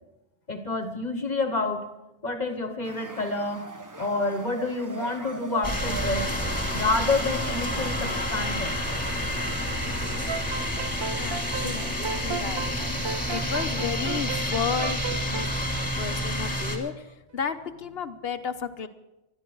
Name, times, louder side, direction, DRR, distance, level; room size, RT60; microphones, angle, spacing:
voice 1, 0.5-1.9 2.2-3.7 4.0-6.3 6.7-8.8, left 3 dB, 40° left, 6 dB, 1.6 m, -28 dB
sound 1, 2.8-10.2, right 4 dB, 20° right, 0.8 m, -41 dB
sound 2, 5.6-16.8, equal, 5° left, 2.6 m, -29 dB
sound 3, 10.3-16.9, right 5 dB, 35° right, 0.4 m, -35 dB
voice 2, 11.2-12.8 13.1-15.5 15.8-18.9, left 6 dB, 65° left, 10 dB, 1.2 m, -33 dB
20.5 x 13.0 x 4.6 m, 0.97 s
omnidirectional pair, 1.1 m